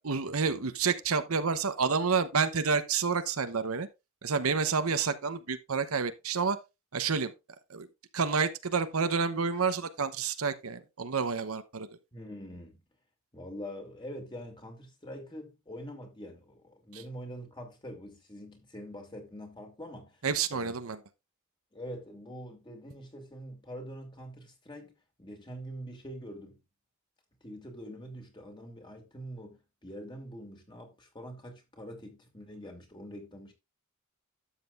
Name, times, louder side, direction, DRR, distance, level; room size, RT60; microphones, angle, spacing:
voice 1, 0.0-3.9 4.2-6.6 6.9-7.3 7.7-7.9 8.1-11.9 16.9-17.0 20.2-21.0, right 5 dB, 75° right, 0.9 m, -29 dB
voice 2, 12.1-12.8 13.3-20.2 20.5-20.7 21.7-26.6 27.4-33.5, equal, 20° left, 2.4 m, -44 dB
12.5 x 7.5 x 2.5 m
head